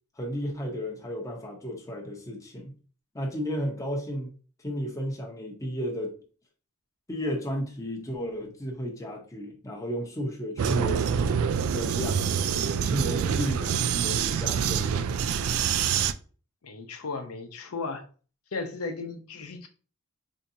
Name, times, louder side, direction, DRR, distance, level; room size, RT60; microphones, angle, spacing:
voice 1, 0.2-2.7 3.1-4.3 4.6-6.1 7.1-11.4 11.7-12.3 12.8-15.0, equal, 15° left, 0.7 m, -33 dB
Vehicle, 10.6-16.1, right 7 dB, 70° right, 0.3 m, -26 dB
voice 2, 16.6-18.0 18.5-19.7, left 4 dB, 90° left, 0.7 m, -35 dB
4.5 x 2.8 x 2.6 m
head